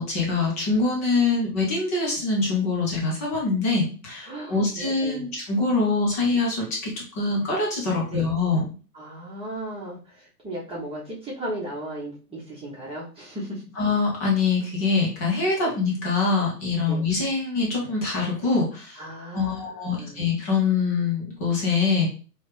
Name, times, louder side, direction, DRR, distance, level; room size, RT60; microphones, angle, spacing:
voice 1, 0.0-8.6 13.8-19.0 19.3-22.1, left 4 dB, 10° left, -2 dB, 0.3 m, -24 dB
voice 2, 4.2-5.3 8.1-8.3 8.9-13.6 15.6-15.7 16.9-17.0 18.9-20.3, right 1 dB, 10° right, -6 dB, 1.0 m, -36 dB
4.1 x 3.2 x 3.2 m, 0.38 s
hypercardioid pair, 120°, 49 cm